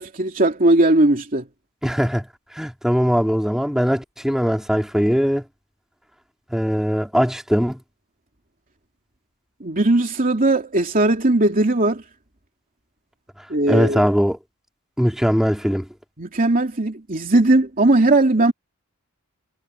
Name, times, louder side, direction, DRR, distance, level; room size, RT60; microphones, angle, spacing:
voice 1, 0.0-1.4 9.6-12.0 13.5-14.1 16.2-18.5, right 2 dB, 40° right, 2.8 m, -18 dB
voice 2, 1.8-2.3 2.5-5.4 6.5-7.8 13.7-14.4 15.0-15.9, equal, ahead, 3.2 m, -20 dB
head